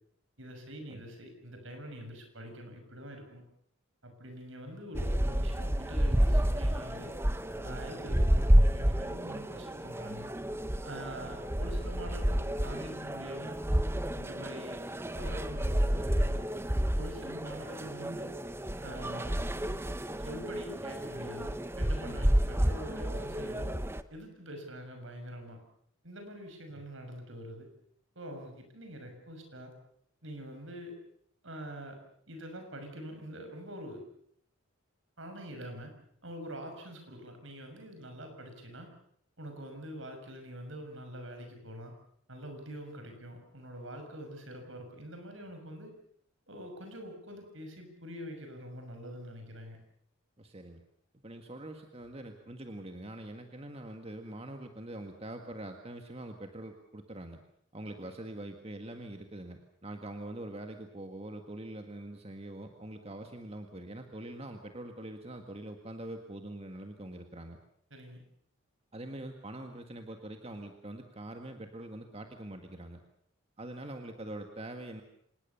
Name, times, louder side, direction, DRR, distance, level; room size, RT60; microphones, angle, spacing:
voice 1, 0.4-3.4 4.0-7.1 7.6-10.3 10.8-13.6 14.1-14.8 15.2-16.4 16.9-18.3 18.8-19.5 20.2-23.7 24.1-25.6 26.0-27.7 28.1-29.7 30.2-31.0 31.4-32.0 32.3-34.0 35.2-35.9 36.2-38.9 39.4-41.9 42.3-45.9 46.5-49.8 67.9-68.2, equal, 65° right, 5 dB, 6.4 m, -45 dB
sound 1, 4.9-24.0, equal, 10° right, 0.9 m, -30 dB
voice 2, 50.4-50.8 51.2-57.4 57.7-67.6 68.9-73.0 73.6-75.0, right 1 dB, 30° right, 5 dB, 1.7 m, -44 dB
26.5 x 19.5 x 7.0 m, 0.67 s
head